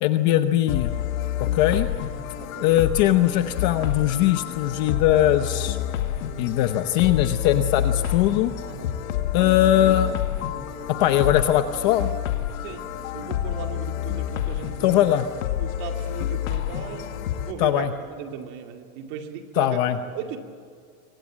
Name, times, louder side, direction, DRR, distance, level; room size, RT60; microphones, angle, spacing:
voice 1, 0.0-0.9 1.5-1.9 2.6-5.8 6.4-8.5 9.3-10.2 11.0-12.1 14.8-15.2 17.6-17.9 19.6-20.0, left 12 dB, 30° left, 9 dB, 0.8 m, -20 dB
sound 1, 0.7-17.5, left 11 dB, 65° left, 2.2 m, -29 dB
voice 2, 2.4-2.7 8.7-9.0 9.4-9.6 12.6-15.1 15.6-19.8 20.1-20.4, right 8 dB, 35° right, 4 dB, 2.4 m, -37 dB
26.5 x 24.5 x 7.4 m, 2.2 s
supercardioid pair, 175°, 43 cm